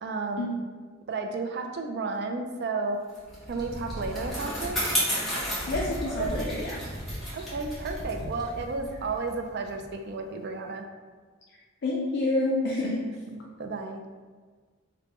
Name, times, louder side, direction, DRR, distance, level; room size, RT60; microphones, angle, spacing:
voice 1, 0.0-0.6 1.1-3.0 3.5-4.8 7.3-10.9 13.3-14.0, right 3 dB, 50° right, 4 dB, 0.4 m, -32 dB
Bicycle, 3.1-9.9, equal, ahead, 0.9 m, -32 dB
voice 2, 5.7-6.8 11.8-13.0, left 2 dB, 55° left, -3 dB, 0.4 m, -28 dB
3.5 x 2.2 x 3.7 m, 1.5 s
head